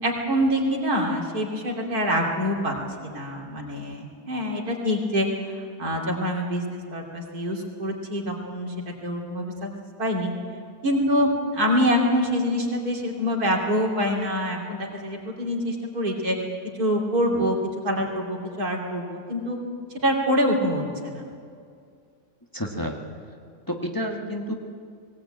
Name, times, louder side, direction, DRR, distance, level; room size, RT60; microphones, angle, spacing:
voice 1, 0.0-2.7 3.0-8.7 9.0-9.7 10.0-10.3 10.8-16.4 16.8-17.6 17.8-19.6 20.0-21.2, equal, 90° right, 0 dB, 3.5 m, -25 dB
voice 2, 22.5-23.0 23.7-24.5, equal, 15° left, 1 dB, 1.5 m, -30 dB
19.5 x 18.0 x 8.9 m, 2.3 s
omnidirectional pair, 1.6 m